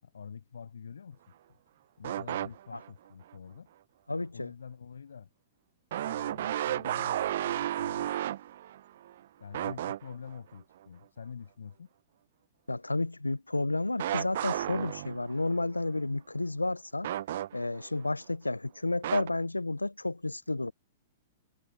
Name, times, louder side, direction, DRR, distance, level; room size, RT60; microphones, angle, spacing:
voice 1, 0.0-1.2 2.0-3.7 4.3-5.3 6.0-8.1 9.4-11.9, left 6 dB, 70° left, 7.5 m, -46 dB
sound 1, 2.0-2.9 3.3-3.4 5.9-9.1 9.5-10.4 14.0-15.5 17.0-17.9 19.0-19.3, right 12 dB, 55° right, 0.8 m, -33 dB
voice 2, 4.1-4.5 12.7-17.1 17.5-20.7, left 2 dB, 85° left, 0.7 m, -31 dB
figure-of-eight pair, 105°, 0 cm